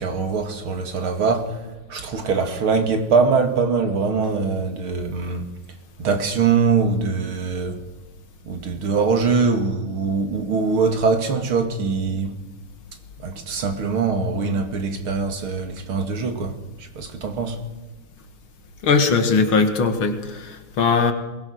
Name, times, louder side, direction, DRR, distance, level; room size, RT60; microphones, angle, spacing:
voice 1, 0.0-1.6 1.9-5.4 6.0-7.8 8.5-12.3 13.2-17.6, right 4 dB, 75° right, 3.1 m, -22 dB
voice 2, 18.8-21.1, left 4 dB, 70° left, 2.8 m, -19 dB
22.5 x 20.5 x 6.5 m
omnidirectional pair, 2.4 m